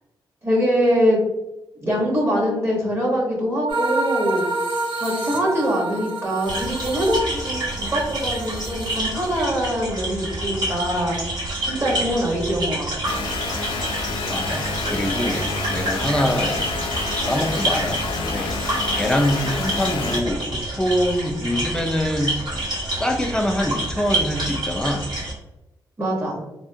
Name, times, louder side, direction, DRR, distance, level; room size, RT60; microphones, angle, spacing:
voice 1, 0.4-1.2 1.8-4.5 4.9-11.2 11.6-13.1 26.0-26.4, equal, 30° right, -2 dB, 1.0 m, -23 dB
sound 1, 3.7-9.4, right 2 dB, 85° right, 0.7 m, -28 dB
sound 2, 6.4-25.3, right 1 dB, 55° right, 1.3 m, -28 dB
sound 3, 13.1-20.2, left 4 dB, 80° left, 0.4 m, -29 dB
voice 2, 14.3-15.4 15.7-16.6 17.2-18.5 18.9-22.4 22.9-25.1, equal, 10° left, 4 dB, 0.4 m, -24 dB
3.3 x 2.1 x 2.6 m, 0.94 s
cardioid pair, 90°, 9 cm